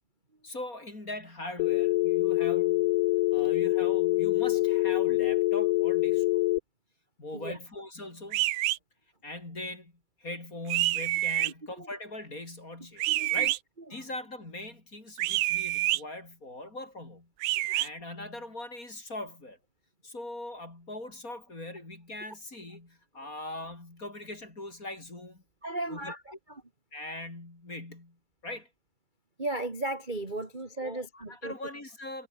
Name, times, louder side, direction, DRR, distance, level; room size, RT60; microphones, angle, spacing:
voice 1, 0.4-2.9 3.3-6.4 7.2-8.4 9.2-9.9 10.2-13.6 13.9-19.6 20.0-25.4 25.9-26.1 26.9-28.2 28.4-28.7 30.8-32.3, left 2 dB, 20° left, 4.9 m, -41 dB
Telephone, 1.6-6.6, left 19 dB, 85° left, 1.9 m, -25 dB
sound 1, 8.3-8.8 10.7-11.5 13.0-13.6 15.2-16.0 17.4-17.9, right 17 dB, 80° right, 2.6 m, -27 dB
voice 2, 11.4-11.9 13.1-13.5 17.6-17.7 25.6-26.6 29.4-31.5, right 2 dB, 15° right, 2.5 m, -36 dB
omnidirectional pair, 4.3 m